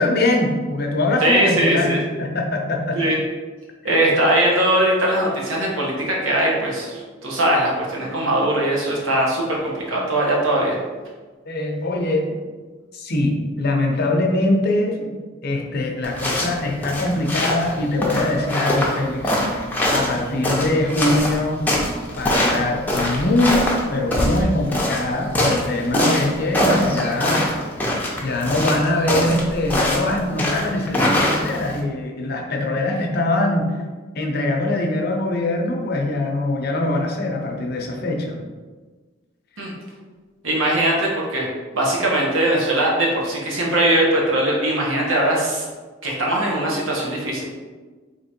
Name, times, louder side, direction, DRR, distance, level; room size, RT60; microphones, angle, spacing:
voice 1, 0.0-1.9 2.2-3.0 11.5-12.4 12.9-15.2 15.4-19.3 19.9-21.6 22.2-23.6 23.9-27.5 28.2-33.7 34.1-38.4, left 2 dB, 50° left, 1 dB, 0.7 m, -22 dB
voice 2, 1.2-2.0 2.9-3.2 3.8-10.8 39.6-39.7 40.4-41.5 41.7-45.6 46.0-47.4, right 1 dB, 90° right, -3 dB, 1.2 m, -20 dB
sound 1, 16.0-31.8, left 1 dB, 10° left, 0.7 m, -23 dB
3.6 x 3.0 x 4.3 m, 1.4 s
head